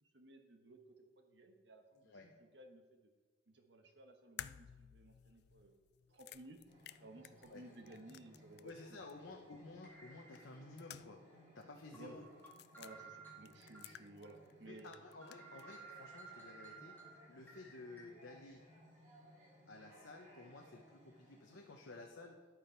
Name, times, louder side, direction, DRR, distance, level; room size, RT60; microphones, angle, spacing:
voice 1, 0.0-3.1 3.5-5.7 6.1-6.6 7.0-9.0 9.2-9.5 11.9-12.2 12.8-14.9, right 2 dB, 65° right, 4 dB, 1.2 m, -57 dB
sound 1, 4.4-8.8 9.1-9.2 10.4-11.4 11.6-11.7 12.4-12.9 13.5-14.5 14.8-15.7, left 11 dB, 55° left, 0.3 m, -54 dB
sound 2, 6.3-6.5 6.9-7.0 8.3-8.4 9.8-10.9 11.3-11.4 11.9-13.8 14.2-14.3 14.8-14.9 15.1-18.0, right 4 dB, 10° left, 2.7 m, -56 dB
sound 3, 6.7-22.1, equal, 45° right, 3.7 m, -63 dB
voice 2, 8.6-11.2 11.5-12.2 14.7-16.9 17.3-18.6 19.7-22.4, left 2 dB, 85° left, 1 dB, 0.9 m, -53 dB
10.5 x 8.3 x 4.5 m, 1.4 s
head